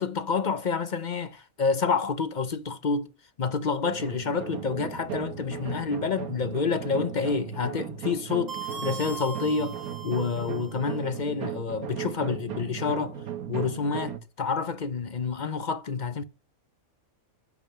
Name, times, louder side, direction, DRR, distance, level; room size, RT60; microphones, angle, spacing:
voice 1, 0.0-3.1 3.4-16.2, left 5 dB, 45° left, 0.7 m, -28 dB
sound 1, 3.8-14.2, right 9 dB, 90° right, 1.5 m, -37 dB
sound 2, 4.1-8.4, left 5 dB, 20° left, 2.4 m, -50 dB
sound 3, 8.5-10.8, right 5 dB, 65° right, 1.9 m, -39 dB
10.5 x 5.5 x 5.5 m
omnidirectional pair, 1.5 m